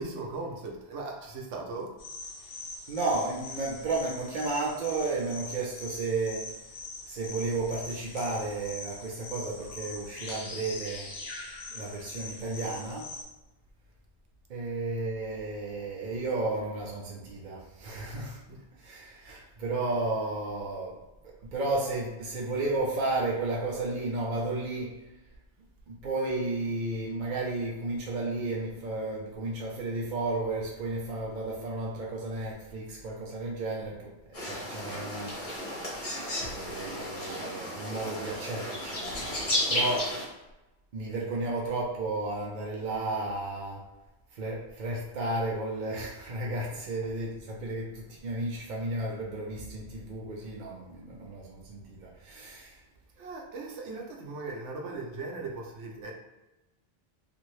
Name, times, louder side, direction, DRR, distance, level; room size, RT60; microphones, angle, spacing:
voice 1, 0.0-1.9 18.5-18.6 46.7-47.1 53.2-56.1, right 3 dB, 80° right, 0 dB, 0.9 m, -38 dB
sound 1, 2.0-13.2, left 3 dB, 65° left, 0.9 m, -42 dB
voice 2, 2.9-6.5 7.1-11.1 11.7-13.1 14.5-18.4 18.8-21.0 21.5-25.0 25.9-35.4 35.7-35.8 36.4-40.4 40.9-43.8 44.3-52.8, right 2 dB, 55° right, -3 dB, 0.6 m, -33 dB
sound 2, 34.3-40.2, left 1 dB, 45° left, 1.2 m, -33 dB
2.7 x 2.5 x 3.1 m, 1.0 s
omnidirectional pair, 1.2 m